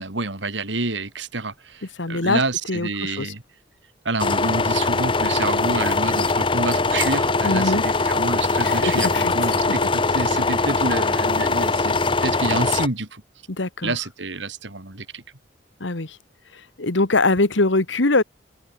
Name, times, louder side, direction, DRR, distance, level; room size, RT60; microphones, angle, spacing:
voice 1, 0.0-3.4 4.0-13.2 13.8-15.2, right 3 dB, 75° right, 3.2 m, -28 dB
voice 2, 2.0-2.4 2.7-3.3 7.4-7.8 8.6-9.6 13.5-14.0 15.8-16.2 16.5-18.2, left 2 dB, 80° left, 1.7 m, -22 dB
sound 1, 4.2-12.9, left 3 dB, 25° left, 1.0 m, -21 dB
open air
head